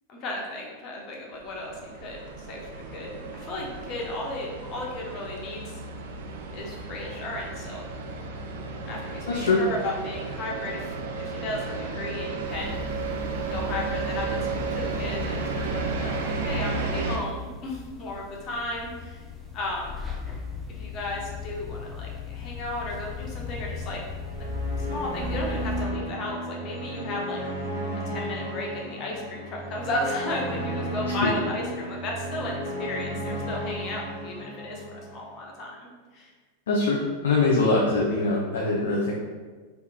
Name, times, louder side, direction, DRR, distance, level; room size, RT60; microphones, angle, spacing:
voice 1, 0.1-5.8 6.5-7.9 8.9-12.8 13.5-14.4 14.7-19.2 19.5-19.9 20.7-24.1 24.4-27.4 28.1-36.3, left 1 dB, 35° left, -2 dB, 0.7 m, -34 dB
sound 1, 1.3-17.2, right 4 dB, 55° right, 0.4 m, -33 dB
voice 2, 9.3-9.6 31.2-31.3 36.7-39.1, left 3 dB, 65° left, -2 dB, 0.4 m, -23 dB
sound 2, 12.5-25.9, left 4 dB, 5° right, 0.7 m, -37 dB
sound 3, 24.1-35.4, equal, 80° right, 0.8 m, -34 dB
3.5 x 2.9 x 2.2 m, 1.4 s
figure-of-eight pair, 90°, 0 cm